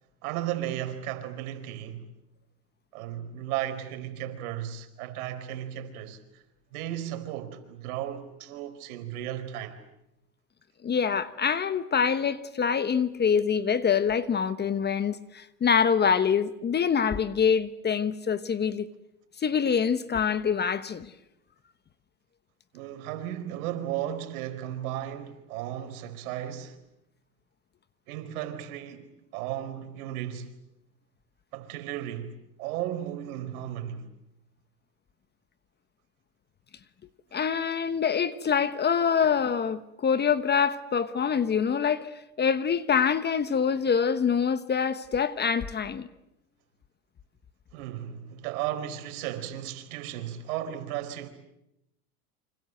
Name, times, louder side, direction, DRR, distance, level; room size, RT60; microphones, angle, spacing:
voice 1, 0.2-2.1 2.9-6.4 6.7-9.8 22.7-26.8 28.1-29.1 29.3-30.5 31.5-34.1 47.7-51.3, right 11 dB, 70° right, 4.5 m, -35 dB
voice 2, 10.8-18.9 19.4-21.1 37.3-42.1 42.4-46.1, left 7 dB, 20° left, 1.1 m, -25 dB
28.5 x 26.0 x 7.9 m
supercardioid pair, 115°, 45 cm